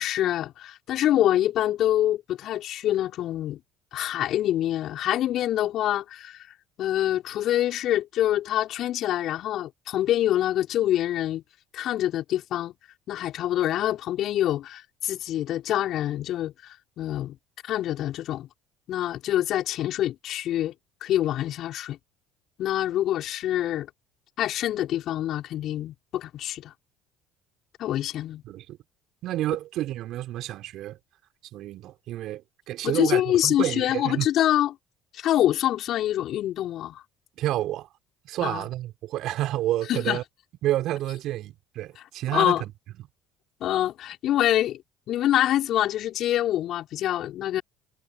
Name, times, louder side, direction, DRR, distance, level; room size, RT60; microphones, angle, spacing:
voice 1, 0.0-3.6 3.9-6.5 6.8-11.4 11.7-12.7 13.1-17.4 17.6-18.5 18.9-20.7 21.0-22.0 22.6-23.9 24.4-26.7 27.8-28.4 32.8-34.7 35.1-37.0 38.4-38.7 39.9-40.2 42.3-42.6 43.6-44.8 45.1-47.6, left 12 dB, 55° left, 5.8 m, -25 dB
voice 2, 28.4-28.8 29.2-31.0 31.5-34.3 37.4-37.9 38.2-40.2 40.6-42.7, right 14 dB, 60° right, 5.0 m, -29 dB
hypercardioid pair, 60°, 0 cm